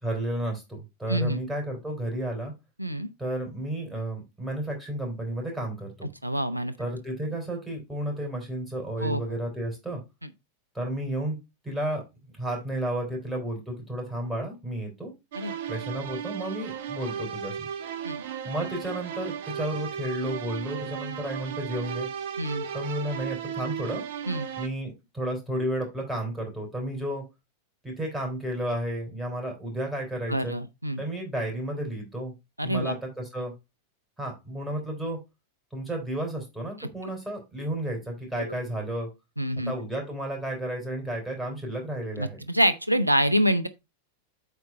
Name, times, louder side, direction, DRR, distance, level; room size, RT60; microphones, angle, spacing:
voice 1, 0.0-2.5 3.2-6.1 6.8-10.0 10.7-11.4 11.6-12.0 12.3-15.1 15.7-17.7 18.4-22.1 22.7-24.0 24.6-27.2 27.8-30.6 31.0-32.3 32.6-33.5 34.2-35.2 35.7-39.1 39.7-42.4, right 1 dB, 5° right, 3.8 m, -32 dB
voice 2, 6.2-6.7 9.0-9.2 15.3-15.6 18.0-18.2 22.4-22.6 24.3-24.5 30.3-31.0 32.6-32.9 36.8-36.9 38.5-38.6 39.4-39.7 42.2-43.7, equal, 85° right, 0.6 m, -26 dB
sound 1, 15.3-24.7, right 8 dB, 55° right, 0.8 m, -35 dB
8.2 x 4.3 x 4.4 m
figure-of-eight pair, 90°, 0 cm